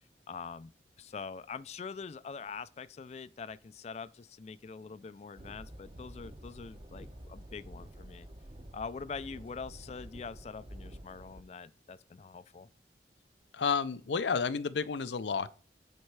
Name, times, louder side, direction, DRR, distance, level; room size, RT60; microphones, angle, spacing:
voice 1, 0.3-0.7 1.0-8.3 8.7-12.7, left 5 dB, 35° left, 0.3 m, -44 dB
sound 1, 5.4-11.4, right 1 dB, 30° right, 0.8 m, -49 dB
voice 2, 13.5-15.5, left 5 dB, 90° left, 0.5 m, -31 dB
9.5 x 4.3 x 4.7 m
head